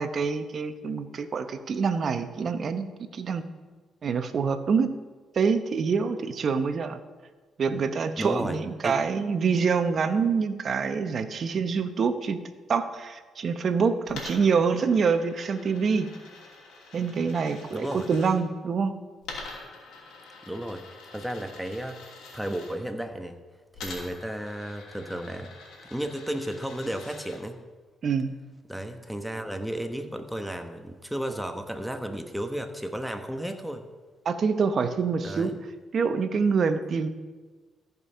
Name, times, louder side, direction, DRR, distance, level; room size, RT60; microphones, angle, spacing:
voice 1, 0.0-3.4 4.0-4.9 5.3-7.0 7.6-12.4 12.7-16.1 16.9-18.9 28.0-28.3 34.2-35.5 35.9-37.1, right 5 dB, 50° right, 10 dB, 0.8 m, -26 dB
voice 2, 8.2-8.6 8.8-9.0 17.7-18.1 20.4-20.8 21.1-22.0 22.3-23.4 23.8-25.5 25.8-27.6 28.7-33.8 35.2-35.6, right 1 dB, ahead, 6 dB, 1.1 m, -33 dB
Coin (dropping), 14.1-18.3 19.2-22.8 23.7-27.4, left 3 dB, 85° left, 2.7 m, -45 dB
14.0 x 5.4 x 5.6 m, 1.3 s
cardioid pair, 90°, 0 cm